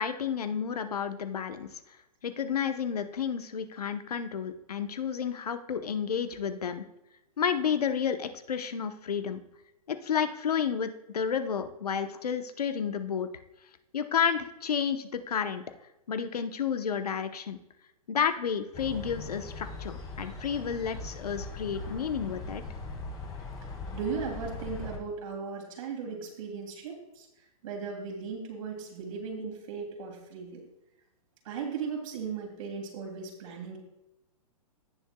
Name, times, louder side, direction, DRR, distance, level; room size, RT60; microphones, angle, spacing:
voice 1, 0.0-1.7 2.2-6.8 7.4-9.4 9.9-13.3 13.9-15.6 16.1-17.6 18.1-22.6, left 7 dB, 85° left, 9 dB, 0.9 m, -31 dB
sound 1, 18.7-25.0, left 3 dB, 20° left, 2.1 m, -40 dB
voice 2, 23.9-27.3 27.6-30.6 31.4-33.8, right 5 dB, 60° right, 1 dB, 2.9 m, -37 dB
17.0 x 6.7 x 2.3 m, 0.90 s
hypercardioid pair, 130°, 19 cm